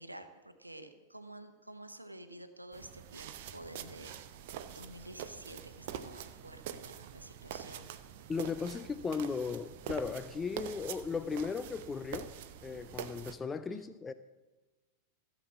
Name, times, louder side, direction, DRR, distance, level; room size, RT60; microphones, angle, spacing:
voice 1, 0.0-4.2 4.7-7.9 13.7-14.0, right 1 dB, 85° right, 0.9 m, -50 dB
sound 1, 2.7-13.4, right 9 dB, 50° right, 0.8 m, -45 dB
voice 2, 8.3-12.3 12.6-14.1, left 5 dB, 15° left, 0.4 m, -36 dB
15.0 x 7.3 x 7.2 m
figure-of-eight pair, 90°, 0 cm